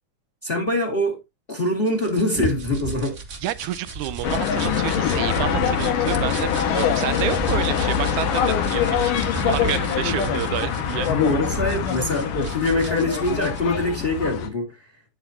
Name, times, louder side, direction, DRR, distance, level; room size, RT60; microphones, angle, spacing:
voice 1, 0.4-1.2 1.5-3.2 11.1-14.8, left 2 dB, 25° left, 1.4 m, -24 dB
sound 1, 1.9-13.6, right 3 dB, 40° right, 1.0 m, -34 dB
voice 2, 3.4-11.1, right 14 dB, 75° right, 2.0 m, -29 dB
sound 2, 4.2-14.5, left 8 dB, 90° left, 2.9 m, -24 dB
9.5 x 8.2 x 2.8 m
omnidirectional pair, 3.7 m